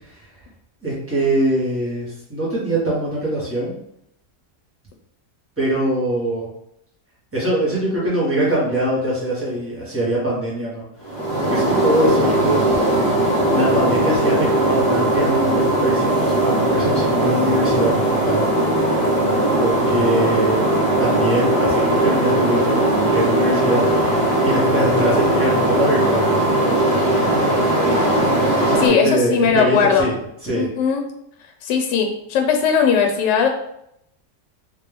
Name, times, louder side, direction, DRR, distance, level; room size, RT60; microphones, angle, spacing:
voice 1, 0.8-3.7 5.6-6.5 7.3-10.8 11.5-12.9 13.5-18.5 19.6-20.6 21.0-26.4 28.4-30.1 30.4-30.7, right 1 dB, 10° right, -7 dB, 1.3 m, -23 dB
sound 1, 11.0-28.9, right 1 dB, 40° left, 1.2 m, -19 dB
voice 2, 28.8-30.1 30.5-31.0 31.6-33.5, left 6 dB, 90° left, 3 dB, 1.2 m, -18 dB
3.5 x 3.0 x 3.4 m, 0.77 s
omnidirectional pair, 1.8 m